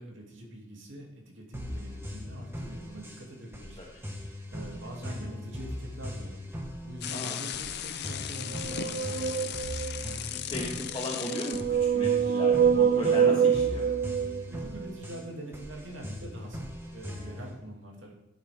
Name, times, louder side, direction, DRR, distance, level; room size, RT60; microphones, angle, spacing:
voice 1, 0.0-3.9 4.2-9.3 14.6-18.1, right 1 dB, 80° right, -1 dB, 2.7 m, -44 dB
sound 1, 1.5-17.6, equal, 15° right, 1.6 m, -40 dB
sound 2, 7.0-11.6, left 10 dB, 60° left, 0.6 m, -37 dB
sound 3, 8.5-10.1 11.0-14.9, right 7 dB, 50° right, 0.3 m, -26 dB
voice 2, 10.3-13.9, left 1 dB, 25° left, -5 dB, 1.6 m, -36 dB
12.5 x 8.7 x 3.6 m, 0.86 s
head